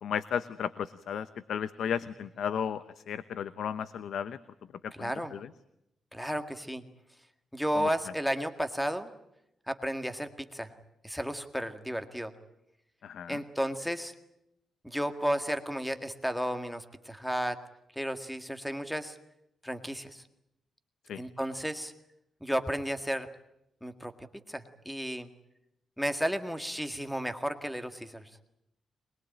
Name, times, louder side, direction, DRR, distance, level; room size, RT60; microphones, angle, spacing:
voice 1, 0.0-4.4 4.8-5.5 7.7-7.9 13.0-13.4 21.1-21.2, left 8 dB, 75° left, 14 dB, 0.9 m, -34 dB
voice 2, 5.0-5.4 6.1-6.8 7.5-9.1 9.7-10.7 11.0-12.3 13.3-14.1 14.8-17.6 17.9-19.2 19.6-20.2 21.2-21.9 22.4-23.3 23.8-24.1 24.5-25.3 26.0-28.3, equal, ahead, 9 dB, 1.8 m, -33 dB
24.0 x 21.5 x 9.0 m, 0.82 s
cardioid pair, 120°, 0 cm